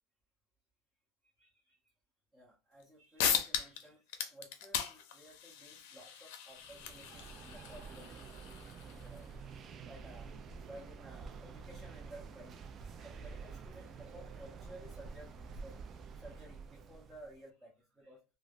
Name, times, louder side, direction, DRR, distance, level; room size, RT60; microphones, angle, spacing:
voice 1, 1.4-1.8 2.3-8.3 8.9-9.3 9.7-10.3 10.7-18.2, right 1 dB, 10° right, -5 dB, 0.9 m, -55 dB
sound 1, 2.8-2.9 3.2-3.8 4.1-9.2, left 8 dB, 75° left, 0.5 m, -38 dB
sound 2, 6.6-17.4, right 5 dB, 35° right, 0.3 m, -49 dB
3.1 x 2.0 x 2.5 m, 0.31 s
supercardioid pair, 125°, 0 cm